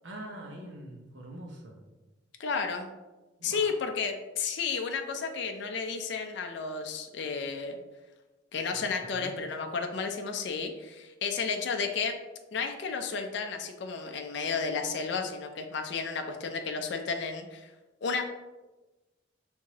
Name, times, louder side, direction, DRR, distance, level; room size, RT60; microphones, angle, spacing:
voice 1, 0.0-1.8 3.4-3.7 8.7-8.8 9.1-9.4, right 1 dB, 70° right, 0 dB, 0.9 m, -44 dB
voice 2, 2.4-2.9 3.4-7.8 8.5-12.2 12.5-17.7 18.0-18.2, left 5 dB, 60° left, 5 dB, 0.4 m, -32 dB
4.5 x 3.6 x 2.9 m, 1.1 s
head